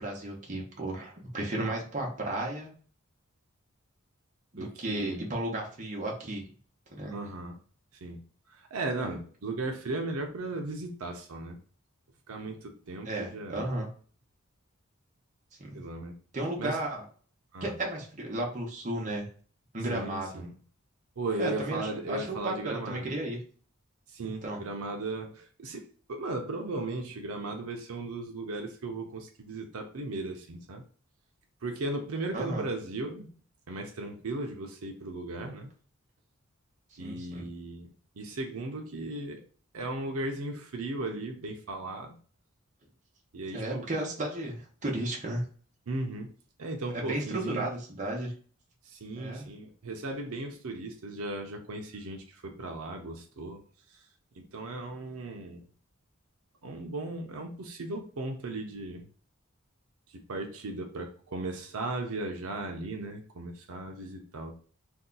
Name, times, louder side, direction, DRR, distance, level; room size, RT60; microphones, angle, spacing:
voice 1, 0.0-2.7 4.5-6.5 6.9-7.1 9.0-9.1 13.0-13.9 15.6-15.8 16.3-17.0 17.6-19.3 19.7-20.4 21.4-23.4 24.4-24.6 32.3-32.6 37.0-37.5 43.5-45.5 46.9-48.3 49.2-49.5, right 1 dB, 35° right, -1 dB, 0.9 m, -34 dB
voice 2, 4.6-5.2 7.1-7.6 8.0-8.2 8.5-11.6 12.3-13.7 15.7-16.1 16.6-16.8 17.5-17.7 19.9-20.5 21.2-23.1 24.1-30.8 31.6-33.3 33.7-35.7 37.0-39.4 39.7-42.2 43.3-43.9 45.9-46.3 46.6-47.7 48.8-53.6 54.4-55.6 56.6-59.1 60.1-64.5, right 2 dB, 90° right, 3 dB, 0.6 m, -36 dB
2.7 x 2.3 x 3.8 m, 0.43 s
head